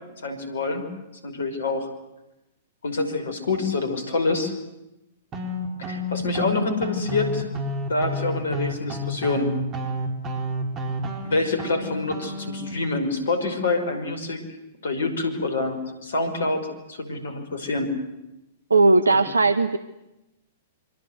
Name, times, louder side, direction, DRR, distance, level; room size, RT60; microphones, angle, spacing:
voice 1, 0.2-0.9 1.2-1.9 2.8-4.5 5.8-7.5 7.9-9.5 11.2-14.4 14.8-17.9 19.1-19.2, left 3 dB, 70° left, 8 dB, 5.5 m, -26 dB
sound 1, 5.3-12.7, equal, 25° right, 4.8 m, -30 dB
voice 2, 18.7-19.8, right 3 dB, 80° right, 14 dB, 1.0 m, -17 dB
27.0 x 25.0 x 8.2 m, 0.93 s
figure-of-eight pair, 105°, 0 cm